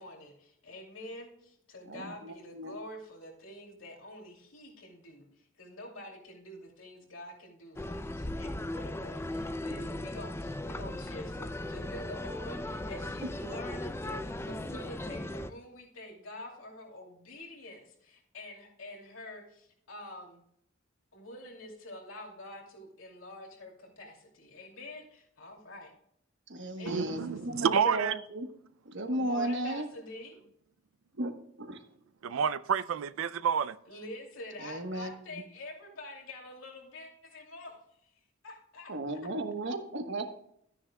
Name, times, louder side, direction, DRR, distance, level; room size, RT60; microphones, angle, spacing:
voice 1, 0.0-20.4 21.1-25.9 26.8-27.7 29.1-30.4 33.9-38.1 38.4-39.2, left 1 dB, 85° left, 2.7 m, -47 dB
voice 2, 1.9-2.8 26.5-28.5 28.8-29.9 31.2-31.3 31.6-31.8 34.6-35.1 38.9-40.2, right 1 dB, 65° right, 1.2 m, -35 dB
sound 1, 7.8-15.5, left 1 dB, 10° left, 0.4 m, -37 dB
voice 3, 26.9-28.2 32.2-33.8, right 7 dB, 90° right, 0.4 m, -29 dB
13.0 x 9.9 x 2.3 m
head